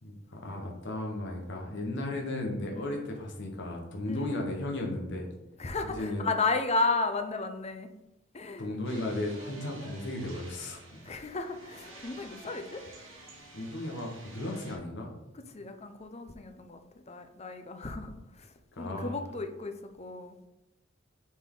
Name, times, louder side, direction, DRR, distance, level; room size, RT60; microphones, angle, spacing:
voice 1, 0.0-5.3 5.9-6.2 8.6-10.8 13.5-15.1 18.8-19.2, left 1 dB, 60° left, 0 dB, 1.1 m, -35 dB
voice 2, 4.1-4.4 5.6-7.9 8.3-8.7 11.1-12.8 15.3-16.8 17.1-20.4, left 3 dB, 30° left, 7 dB, 0.6 m, -33 dB
sound 1, 8.8-14.8, right 2 dB, 70° right, 2.0 m, -50 dB
7.2 x 4.3 x 3.7 m, 0.92 s
head